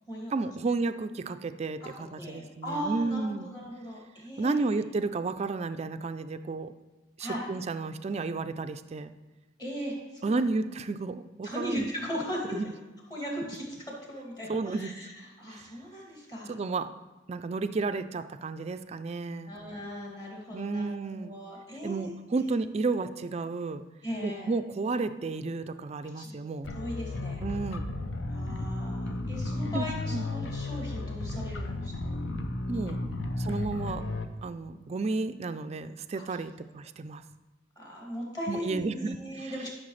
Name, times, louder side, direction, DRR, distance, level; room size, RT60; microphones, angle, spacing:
voice 1, 0.3-3.5 4.4-6.7 7.2-9.1 10.2-11.9 12.5-12.7 14.5-14.9 15.5-15.7 16.5-16.9 17.3-19.6 20.5-21.3 21.8-23.8 24.2-26.7 27.4-27.9 29.7-29.8 30.1-30.2 32.7-33.0 33.4-34.0 34.4-37.2 38.5-39.5, right 3 dB, 35° right, 10 dB, 0.3 m, -32 dB
voice 2, 2.2-4.8 7.2-7.5 9.6-10.5 11.4-12.4 13.1-16.6 19.4-21.0 21.2-22.1 24.0-24.5 26.2-26.3 26.7-27.4 28.3-32.2 32.8-32.9 33.6-33.7 36.3-36.4 37.8-39.7, equal, 20° left, -3 dB, 2.3 m, -38 dB
sound 1, 26.6-34.2, left 2 dB, 70° left, 0.7 m, -34 dB
12.5 x 6.4 x 3.2 m, 1.2 s
head